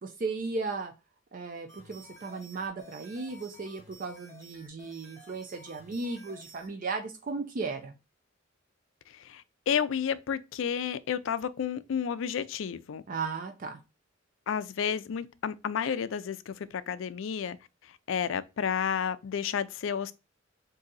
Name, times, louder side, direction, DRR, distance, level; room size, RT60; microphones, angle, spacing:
voice 1, 0.0-0.9 1.3-7.9 13.1-13.8, right 4 dB, 45° right, 0.4 m, -36 dB
sound 1, 1.7-6.7, equal, 15° left, 1.1 m, -53 dB
voice 2, 9.1-13.0 14.5-17.6 17.8-20.1, left 7 dB, 70° left, 0.4 m, -31 dB
3.8 x 2.7 x 3.9 m
head